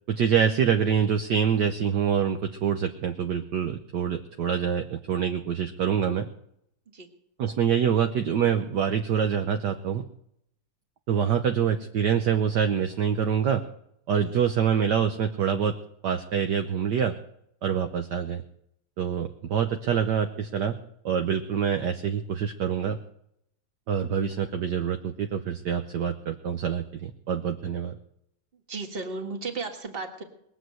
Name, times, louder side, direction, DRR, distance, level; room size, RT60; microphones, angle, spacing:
voice 1, 0.1-6.3 7.4-10.0 11.1-13.6 14.1-15.7 16.0-17.1 17.6-18.4 19.0-20.8 21.0-23.0 23.9-28.0, right 7 dB, 60° right, 6 dB, 1.3 m, -25 dB
voice 2, 28.7-30.2, right 4 dB, 30° right, 4 dB, 1.8 m, -34 dB
20.5 x 7.9 x 7.9 m, 0.75 s
omnidirectional pair, 2.3 m